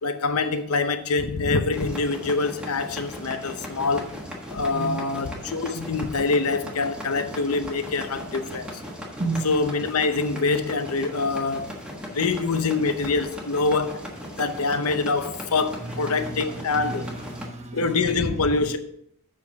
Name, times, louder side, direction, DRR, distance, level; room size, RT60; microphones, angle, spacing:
voice 1, 0.0-4.1 4.5-8.7 9.4-11.7 12.1-14.0 14.4-17.0 17.7-18.8, left 3 dB, 75° left, 0.8 m, -25 dB
sound 1, 1.7-17.5, equal, 5° right, 1.4 m, -38 dB
voice 2, 4.7-5.0 9.2-9.5 12.2-12.3 15.7-18.8, right 2 dB, 30° right, 1.1 m, -33 dB
7.8 x 6.0 x 4.7 m
head